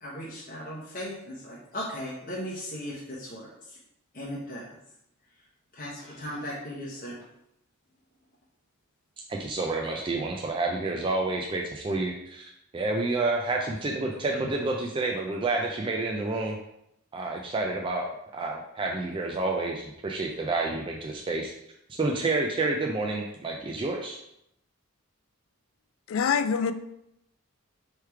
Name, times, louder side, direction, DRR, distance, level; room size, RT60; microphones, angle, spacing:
voice 1, 0.0-3.8 4.1-4.8 5.7-7.2, equal, 40° left, -5 dB, 0.8 m, -37 dB
voice 2, 9.3-16.6 17.1-18.0 18.3-21.5 22.0-24.2, right 3 dB, 25° right, 0 dB, 0.3 m, -29 dB
voice 3, 26.1-26.7, left 6 dB, 65° left, 11 dB, 0.3 m, -24 dB
3.4 x 3.2 x 4.5 m, 0.79 s
head